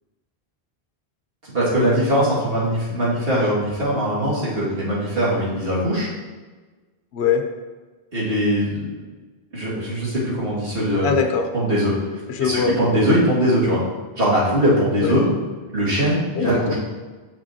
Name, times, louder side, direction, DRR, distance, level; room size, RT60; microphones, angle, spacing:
voice 1, 1.4-6.1 8.1-8.9 9.5-11.1 11.5-11.9 12.4-13.8 14.2-15.3 15.7-16.7, equal, 60° right, -7 dB, 2.3 m, -21 dB
voice 2, 11.0-11.5 12.3-12.8 15.0-15.2 16.3-16.7, left 6 dB, 80° left, 4 dB, 1.0 m, -22 dB
7.0 x 6.1 x 2.7 m, 1.3 s
omnidirectional pair, 1.1 m